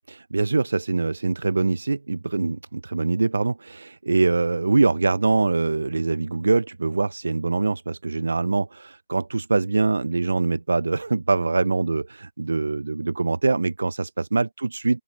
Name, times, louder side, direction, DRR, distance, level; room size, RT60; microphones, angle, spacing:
voice 1, 0.1-15.0, right 3 dB, 85° right, 0.3 m, -23 dB
open air
hypercardioid pair, 145°, 0 cm